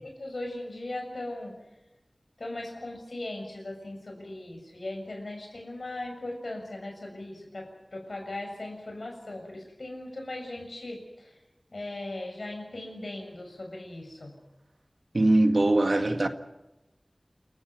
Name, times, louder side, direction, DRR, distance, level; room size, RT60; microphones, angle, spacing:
voice 1, 0.0-1.6 2.4-11.4 11.7-14.3, left 2 dB, 90° left, 6.9 m, -38 dB
voice 2, 15.1-16.3, right 2 dB, 70° right, 1.8 m, -21 dB
28.5 x 15.0 x 9.5 m
wide cardioid pair, 40°, 0 cm